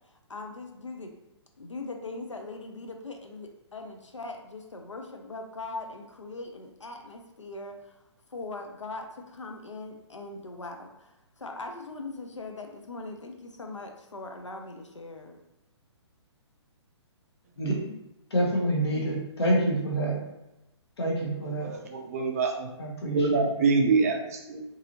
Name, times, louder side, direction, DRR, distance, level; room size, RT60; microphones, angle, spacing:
voice 1, 0.3-1.1 1.6-8.0 8.3-15.4, left 3 dB, 90° left, 3 dB, 0.4 m, -40 dB
voice 2, 17.6-17.9 18.3-20.3 21.0-21.7 22.8-23.3 23.6-23.7, right 1 dB, 60° left, -1 dB, 0.8 m, -27 dB
voice 3, 21.6-22.7 23.1-24.6, right 4 dB, 30° right, 2 dB, 0.3 m, -25 dB
2.6 x 2.6 x 2.6 m, 0.90 s
figure-of-eight pair, 125°, 15 cm